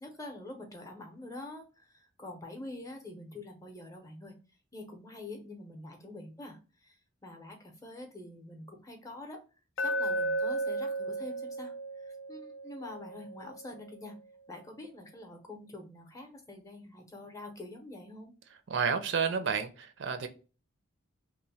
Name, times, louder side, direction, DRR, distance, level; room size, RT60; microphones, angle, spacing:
voice 1, 0.0-4.4 4.7-9.4 9.8-14.2 14.5-18.3, left 2 dB, 15° left, 0.6 m, -46 dB
Glass, 9.8-13.9, right 2 dB, 65° left, 0.3 m, -34 dB
voice 2, 18.7-20.3, right 6 dB, 60° right, 0.4 m, -30 dB
3.0 x 2.1 x 4.0 m
head